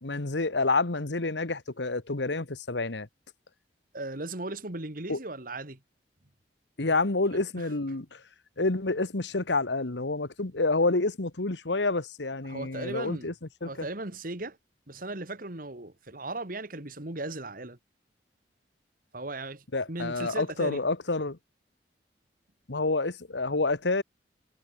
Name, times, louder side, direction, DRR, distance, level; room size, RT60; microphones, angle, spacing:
voice 1, 0.0-3.1 5.1-5.2 6.8-8.2 8.6-13.3 13.6-13.9 19.7-21.4 22.7-24.0, left 3 dB, 80° left, 1.5 m, -28 dB
voice 2, 3.9-5.8 7.3-7.7 12.5-13.3 13.6-14.6 14.9-17.8 19.1-20.8, right 2 dB, 50° right, 2.6 m, -37 dB
head